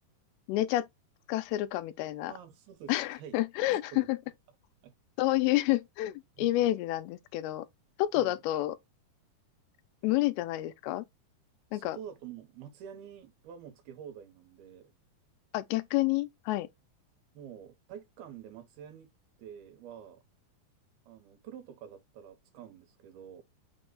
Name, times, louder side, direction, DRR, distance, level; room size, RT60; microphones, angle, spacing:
voice 1, 0.5-0.9 1.3-2.3 2.9-4.2 5.2-7.7 8.0-8.8 10.0-11.0 11.7-12.0 15.5-16.7, left 16 dB, 90° left, 2.6 m, -29 dB
voice 2, 2.3-3.4 3.9-4.1 4.8-4.9 5.5-5.6 6.4-6.7 8.1-8.4 11.7-14.9 17.3-19.1 19.4-20.2 21.1-23.4, right 9 dB, 75° right, 2.8 m, -48 dB
6.2 x 2.2 x 3.7 m
omnidirectional pair, 4.4 m